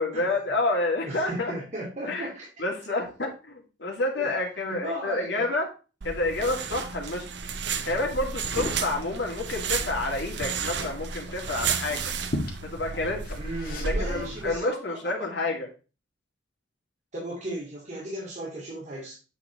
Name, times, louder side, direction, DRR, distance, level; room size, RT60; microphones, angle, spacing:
voice 1, 0.0-1.5 2.1-2.3 2.6-5.7 6.0-7.3 7.9-12.1 12.6-13.4 13.8-15.7, left 2 dB, 65° left, 0 dB, 2.2 m, -29 dB
voice 2, 1.1-2.5 4.1-4.3 4.6-5.5 13.4-15.4 17.1-19.2, right 1 dB, 35° right, -7 dB, 2.8 m, -36 dB
sound 1, 6.0-14.6, right 6 dB, 65° right, 0.7 m, -33 dB
Liquid, 7.4-14.1, left 1 dB, 50° left, 1.9 m, -38 dB
8.4 x 4.3 x 4.1 m, 0.32 s
head